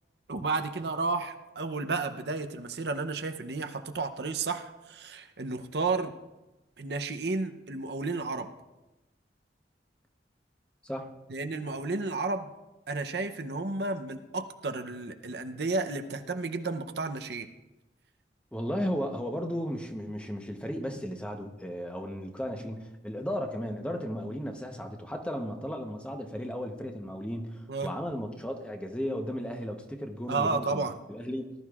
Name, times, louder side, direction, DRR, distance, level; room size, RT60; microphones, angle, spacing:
voice 1, 0.3-6.1 6.8-8.5 11.3-12.5 12.9-17.5 27.7-27.9 30.3-31.0, right 3 dB, 60° right, 7 dB, 0.7 m, -32 dB
voice 2, 10.8-11.1 18.5-30.8 31.1-31.5, equal, 5° left, 4 dB, 0.9 m, -35 dB
19.0 x 12.0 x 2.4 m, 1.0 s
head